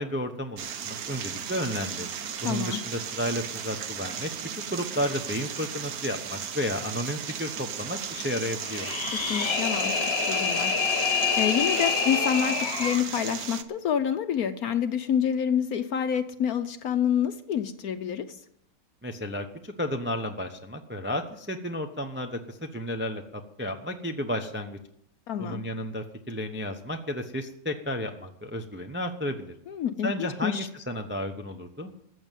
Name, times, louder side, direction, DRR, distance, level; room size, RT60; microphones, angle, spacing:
voice 1, 0.0-2.1 2.4-8.9 19.0-23.2 23.6-24.8 25.4-29.5 30.0-31.9, equal, 15° right, 4 dB, 0.5 m, -32 dB
sound 1, 0.6-13.6, right 8 dB, 60° right, 1.2 m, -36 dB
voice 2, 2.4-2.8 9.1-18.4 25.3-25.6 29.7-30.7, left 8 dB, 60° left, 10 dB, 1.1 m, -28 dB
sound 2, 8.6-13.1, left 5 dB, 40° left, 1.3 m, -27 dB
14.5 x 7.3 x 9.1 m, 0.74 s
omnidirectional pair, 2.0 m